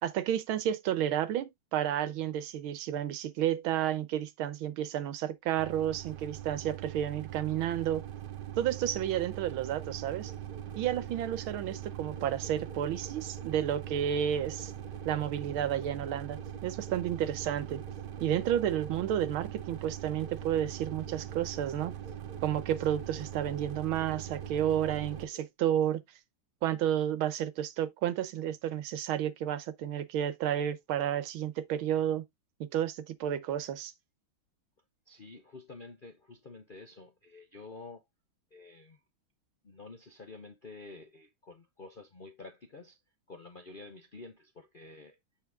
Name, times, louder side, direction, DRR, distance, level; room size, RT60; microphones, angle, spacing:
voice 1, 0.0-8.1 8.6-10.3 10.8-14.7 15.0-17.8 18.2-22.0 22.4-26.0 26.6-32.2 32.6-33.9, right 10 dB, 85° right, 1.7 m, -31 dB
sound 1, 5.6-25.3, right 11 dB, 70° right, 1.3 m, -42 dB
sound 2, 9.6-25.5, left 1 dB, 30° left, 0.9 m, -53 dB
voice 2, 35.1-38.0 38.5-39.0 39.6-43.0 43.3-45.2, left 3 dB, 50° left, 0.6 m, -49 dB
8.4 x 4.3 x 3.5 m
omnidirectional pair, 2.2 m